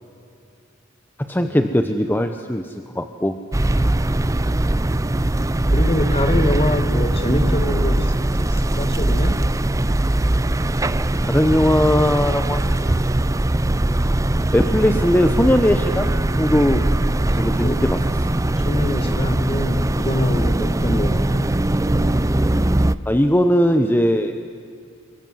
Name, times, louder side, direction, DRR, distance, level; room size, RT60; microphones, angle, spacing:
voice 1, 1.2-3.3 11.3-13.0 14.5-16.9 17.4-18.0 23.1-24.3, left 1 dB, 10° left, 6 dB, 0.9 m, -19 dB
sound 1, 3.5-22.9, right 1 dB, 15° right, 0.5 m, -20 dB
voice 2, 5.7-9.4 17.1-17.4 17.6-17.9 18.6-21.5, left 1 dB, 30° left, 8 dB, 1.9 m, -25 dB
28.0 x 23.0 x 7.9 m, 2.4 s
head